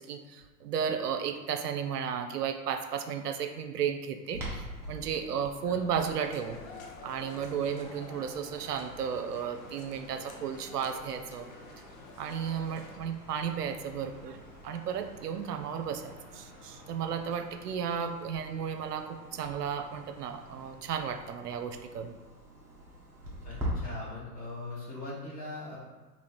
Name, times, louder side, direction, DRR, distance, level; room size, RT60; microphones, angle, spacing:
voice 1, 0.0-6.6 7.0-11.5 12.2-22.2, right 7 dB, 80° right, 7 dB, 0.6 m, -34 dB
Clock, 4.3-23.7, equal, 5° right, 0.4 m, -46 dB
sound 1, 6.2-13.0, left 4 dB, 60° left, 0.8 m, -49 dB
sound 2, 6.6-20.8, left 1 dB, 35° left, 1.4 m, -55 dB
voice 2, 23.4-25.8, left 2 dB, 20° left, -5 dB, 1.3 m, -40 dB
3.2 x 3.1 x 4.3 m, 1.2 s
hypercardioid pair, 115°, 47 cm